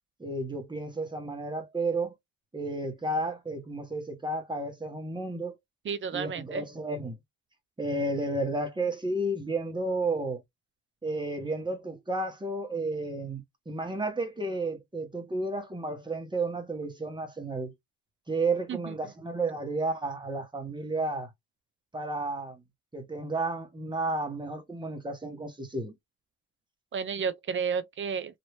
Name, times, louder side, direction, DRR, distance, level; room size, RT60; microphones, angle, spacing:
voice 1, 0.2-2.1 2.5-5.6 6.1-7.2 7.8-10.4 11.0-17.7 18.3-21.3 21.9-22.6 22.9-25.9, right 2 dB, 15° right, 1.2 m, -32 dB
voice 2, 5.8-6.7 18.7-19.1 26.9-28.4, right 6 dB, 40° right, 0.5 m, -32 dB
3.2 x 2.7 x 2.9 m
cardioid pair, 90°, 30 cm